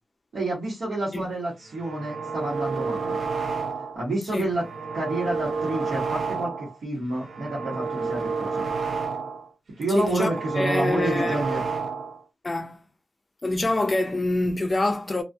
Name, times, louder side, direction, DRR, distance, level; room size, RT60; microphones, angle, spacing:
voice 1, 0.3-3.2 3.9-4.6 4.9-8.7 9.8-11.6, right 2 dB, 90° right, 1.1 m, -29 dB
sound 1, 1.7-4.0 4.4-6.8 7.1-9.5 9.8-12.2, right 4 dB, 70° right, 0.5 m, -30 dB
voice 2, 9.9-11.4 12.4-12.8 13.4-15.2, left 2 dB, 30° left, 0.3 m, -26 dB
2.6 x 2.3 x 2.3 m
wide cardioid pair, 85°, 0 cm